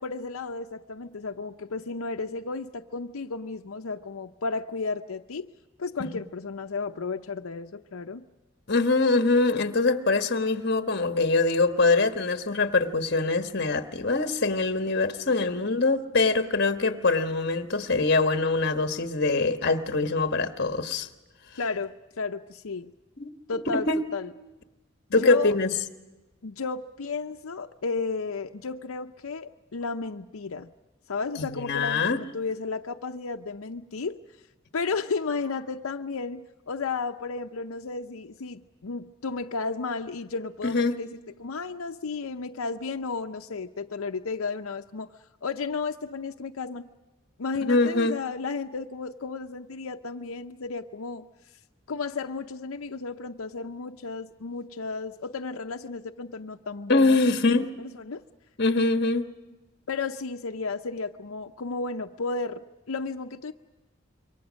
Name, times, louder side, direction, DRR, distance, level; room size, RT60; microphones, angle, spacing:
voice 1, 0.0-5.5 5.8-8.2 21.6-22.9 23.5-24.3 25.1-25.6 26.4-30.7 31.1-34.2 34.7-41.1 41.4-45.1 45.4-46.9 47.4-51.3 51.9-57.4 57.8-58.2 59.9-63.5, left 4 dB, 90° left, 0.7 m, -33 dB
voice 2, 8.7-21.1 23.2-23.3 23.7-24.0 25.1-25.8 31.4-32.2 40.6-41.0 47.7-48.2 56.9-57.7 58.6-59.3, left 3 dB, 50° left, 1.4 m, -23 dB
27.0 x 23.5 x 6.3 m
head